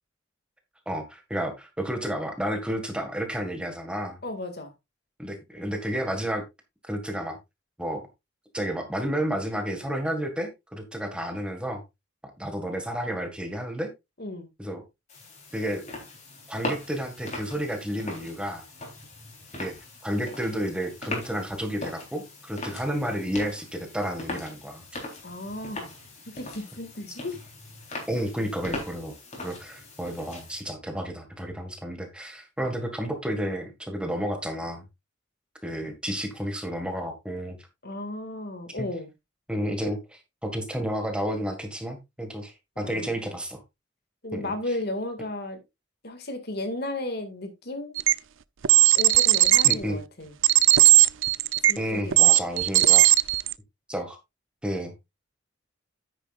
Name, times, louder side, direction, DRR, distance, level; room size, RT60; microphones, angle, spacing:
voice 1, 0.8-4.2 5.2-6.4 6.9-7.4 7.8-8.0 8.5-11.8 12.4-13.9 14.6-14.8 15.5-15.8 16.5-18.6 19.5-19.7 20.0-24.8 28.1-34.8 35.6-37.6 38.7-38.9 39.5-43.6 44.3-44.5 49.6-50.0 51.8-53.0 53.9-54.2 54.6-54.9, equal, 5° right, 1.8 m, -31 dB
voice 2, 4.2-4.7 14.2-14.5 25.2-25.9 26.3-27.4 37.8-39.1 42.8-43.2 44.2-45.6 46.0-48.0 48.9-50.3 51.7-52.4, left 2 dB, 55° left, 2.1 m, -34 dB
sound 1, 15.1-30.6, left 2 dB, 35° left, 3.9 m, -40 dB
sound 2, 48.0-48.1 48.6-49.7 50.4-51.8 52.1-53.5, right 17 dB, 75° right, 0.5 m, -17 dB
9.7 x 9.5 x 2.5 m
head